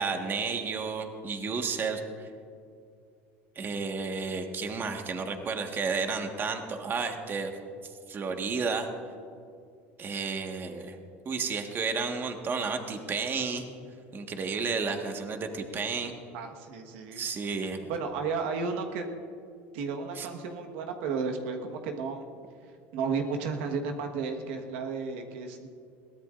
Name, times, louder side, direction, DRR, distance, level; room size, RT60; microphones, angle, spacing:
voice 1, 0.0-2.3 3.5-7.5 8.1-8.9 10.0-11.0 11.2-13.6 14.1-16.1 17.1-17.8 20.1-20.3, right 4 dB, 35° right, 4 dB, 1.5 m, -32 dB
voice 2, 16.3-17.2 17.8-19.0 19.7-22.2 22.9-25.7, right 5 dB, 80° right, 4 dB, 1.4 m, -33 dB
22.0 x 16.5 x 2.5 m, 2.4 s
supercardioid pair, 105°, 6 cm